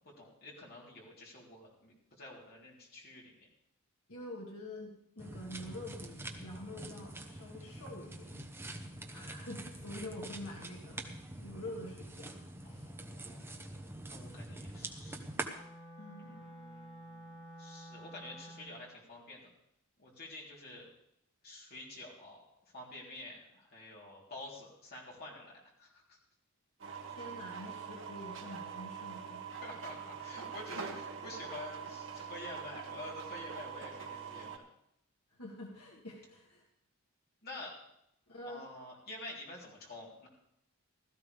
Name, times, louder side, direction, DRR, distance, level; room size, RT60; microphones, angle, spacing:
voice 1, 0.1-3.3 12.6-15.3 16.2-19.5 20.0-20.9 21.4-22.4 22.7-25.5 25.8-26.2 29.6-34.6 37.4-37.7 38.5-40.3, left 2 dB, 45° left, -3 dB, 3.5 m, -49 dB
voice 2, 4.1-8.4 9.1-12.9 16.0-16.5 27.0-29.4 30.8-30.9 35.3-36.6 38.3-38.7, left 1 dB, 80° left, -2 dB, 1.9 m, -47 dB
sound 1, 5.2-15.5, right 1 dB, 10° right, 1.0 m, -45 dB
Wind instrument woodwind instrument, 15.5-18.9, right 1 dB, 25° left, 6.1 m, -51 dB
sound 2, 26.8-34.6, right 6 dB, 60° right, 1.5 m, -44 dB
16.5 x 13.5 x 3.5 m, 0.76 s
head